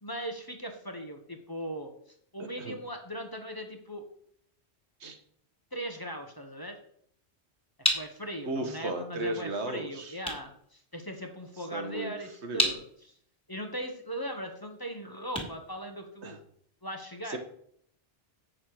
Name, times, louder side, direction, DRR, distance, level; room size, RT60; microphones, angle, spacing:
voice 1, 0.0-1.9 2.3-4.0 5.7-6.8 7.9-13.1 13.5-16.4 16.8-17.4, equal, 20° left, 3 dB, 1.0 m, -39 dB
voice 2, 2.4-2.8 5.0-5.2 8.4-10.2 11.7-12.1 12.4-12.8 16.2-16.4 17.3-17.4, right 2 dB, 85° right, 6 dB, 1.5 m, -35 dB
sound 1, 7.2-16.6, equal, 5° left, 2.1 m, -36 dB
8.1 x 6.4 x 4.7 m, 0.65 s
omnidirectional pair, 1.1 m